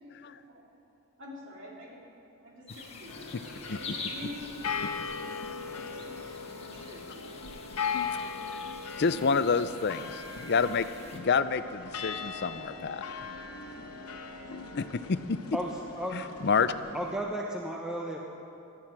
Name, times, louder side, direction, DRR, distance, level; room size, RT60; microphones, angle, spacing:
voice 1, 0.0-0.6 1.2-2.0 2.4-4.5 5.0-7.4, left 1 dB, 55° right, -3 dB, 3.3 m, -47 dB
sound 1, 2.7-11.2, left 4 dB, 30° left, 1.5 m, -46 dB
sound 2, 3.1-17.2, left 5 dB, 75° left, 1.2 m, -39 dB
voice 2, 9.0-10.9 11.1-13.0 14.5-15.4 16.1-16.7, left 5 dB, 50° left, 13 dB, 0.5 m, -28 dB
voice 3, 16.6-18.2, right 1 dB, 5° right, -1 dB, 0.8 m, -34 dB
17.5 x 12.5 x 6.0 m, 2.8 s
head